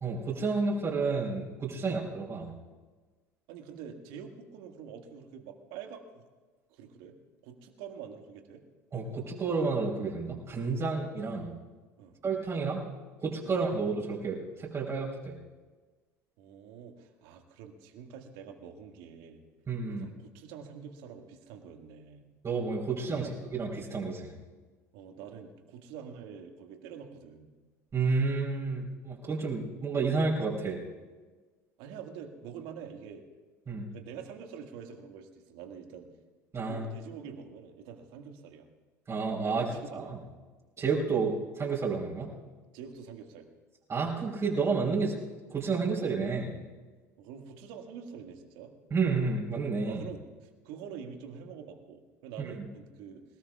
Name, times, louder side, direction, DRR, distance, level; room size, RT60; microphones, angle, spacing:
voice 1, 0.0-2.5 8.9-11.5 12.2-12.8 13.2-15.4 19.7-20.1 22.4-24.3 27.9-30.8 33.7-33.9 36.5-36.9 39.1-39.7 39.9-40.2 40.8-42.3 43.9-45.2 45.5-46.6 48.9-50.0 52.4-52.6, right 4 dB, 30° right, -4 dB, 4.1 m, -30 dB
voice 2, 3.5-6.2 6.7-7.1 7.4-8.6 12.0-12.2 13.4-13.6 16.4-19.4 20.0-22.2 23.1-23.3 24.9-27.5 31.8-33.2 33.9-36.1 36.6-38.7 39.4-40.2 42.7-43.5 47.2-48.7 49.9-53.2, right 7 dB, 65° right, 4 dB, 1.9 m, -46 dB
27.0 x 18.0 x 2.4 m, 1.3 s
hypercardioid pair, 70°, 9 cm